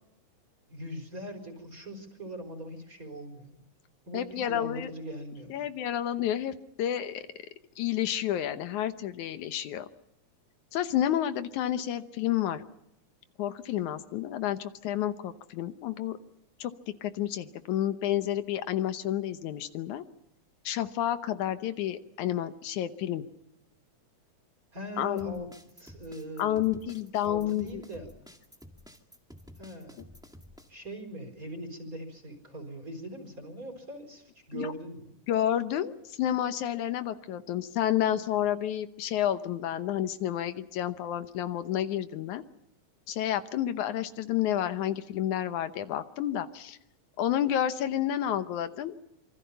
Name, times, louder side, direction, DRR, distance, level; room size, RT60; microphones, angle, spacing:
voice 1, 0.7-3.6 4.1-5.7 24.7-25.5 25.8-26.6 27.2-28.1 29.6-30.0 30.7-35.1, right 1 dB, 25° right, 5 dB, 5.0 m, -41 dB
voice 2, 4.1-4.9 5.5-7.2 7.8-9.9 10.7-12.6 13.4-16.2 16.6-16.7 17.0-20.0 20.6-23.3 25.0-25.4 26.4-27.8 34.5-34.7 35.3-42.4 43.1-46.8 47.2-49.0, left 11 dB, 80° left, 10 dB, 2.4 m, -30 dB
sound 1, 25.2-30.7, equal, ahead, 1.2 m, -51 dB
27.0 x 24.5 x 5.7 m, 0.82 s
omnidirectional pair, 3.4 m